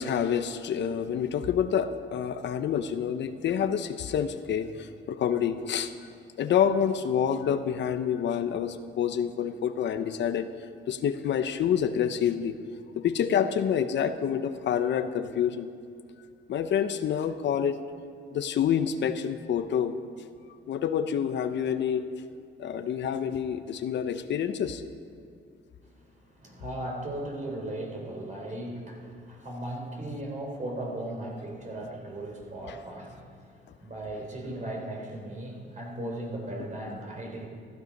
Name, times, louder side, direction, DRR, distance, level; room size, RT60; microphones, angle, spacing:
voice 1, 0.0-5.9 6.4-10.5 10.9-12.6 13.0-15.7 16.5-17.8 18.3-20.0 20.7-22.1 22.6-24.8 32.7-32.8, left 8 dB, 65° left, 9 dB, 0.8 m, -27 dB
voice 2, 25.8-37.5, right 1 dB, 40° right, 0 dB, 3.9 m, -37 dB
15.0 x 14.0 x 5.3 m, 2.3 s
cardioid pair, 90°, 20 cm